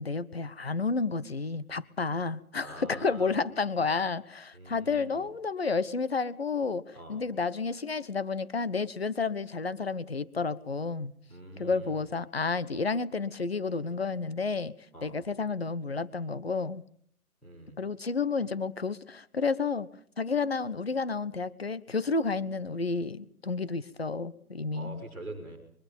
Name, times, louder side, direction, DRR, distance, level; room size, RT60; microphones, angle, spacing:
voice 1, 0.0-11.1 11.6-14.7 15.0-16.8 17.8-19.9 20.2-25.0, left 4 dB, 45° left, 17 dB, 1.1 m, -31 dB
voice 2, 2.6-3.3 4.5-5.3 6.9-7.2 11.3-12.0 14.9-15.2 17.4-17.8 24.7-25.6, right 2 dB, 5° left, -6 dB, 3.4 m, -45 dB
24.0 x 23.5 x 5.5 m, 0.63 s
hypercardioid pair, 180°, 44 cm